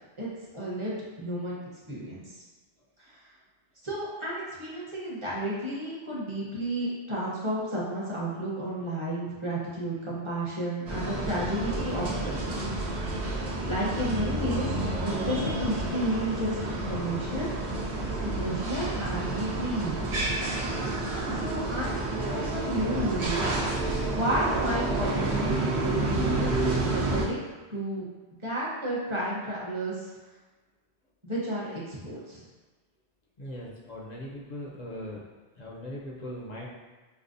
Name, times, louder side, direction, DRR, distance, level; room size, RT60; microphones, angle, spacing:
voice 1, 0.2-1.6 1.9-2.4 3.0-3.2 3.8-12.7 13.2-14.7 15.0-17.7 18.0-20.1 21.3-23.5 24.1-27.4 27.7-28.0 28.4-30.1 31.2-32.4, right 1 dB, 30° right, -7 dB, 0.8 m, -32 dB
sound 1, 10.9-27.2, right 2 dB, 80° right, 1.0 m, -29 dB
voice 2, 33.4-35.2 35.6-36.7, left 1 dB, 50° left, -4 dB, 0.6 m, -39 dB
5.3 x 2.0 x 2.5 m, 1.2 s
omnidirectional pair, 1.1 m